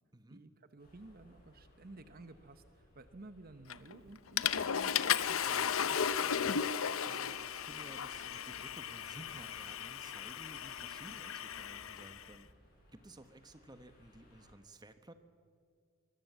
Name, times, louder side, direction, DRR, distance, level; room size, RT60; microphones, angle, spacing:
voice 1, 0.3-6.5, right 2 dB, 45° right, 10 dB, 1.0 m, -54 dB
sound 1, 0.8-14.5, left 1 dB, 45° left, 7.8 m, -63 dB
Water / Toilet flush, 3.7-4.0 4.4-12.2, left 8 dB, 85° left, 0.7 m, -35 dB
voice 2, 7.0-12.5 12.9-15.1, right 1 dB, 20° right, 9 dB, 1.2 m, -55 dB
23.5 x 21.0 x 8.2 m, 2.1 s
head